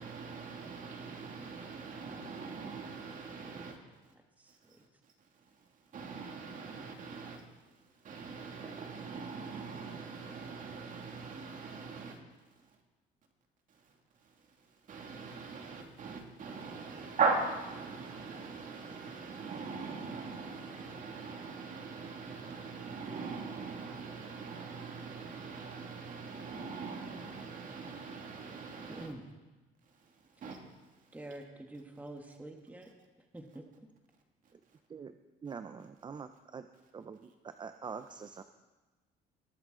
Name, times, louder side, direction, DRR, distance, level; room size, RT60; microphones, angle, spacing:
voice 1, 0.0-3.8 4.0-4.1 4.5-12.2 12.5-12.8 14.2-29.1 29.9-30.7 31.0-31.1 34.4-34.5, right 4 dB, 50° right, 2.2 m, -41 dB
voice 2, 4.1-4.8 28.9-29.3 31.1-32.9 33.3-33.7, right 1 dB, 10° right, 1.3 m, -47 dB
voice 3, 35.4-36.7 36.9-38.4, right 6 dB, 25° right, 0.5 m, -44 dB
20.0 x 8.0 x 3.8 m
cardioid pair, 110°, 17 cm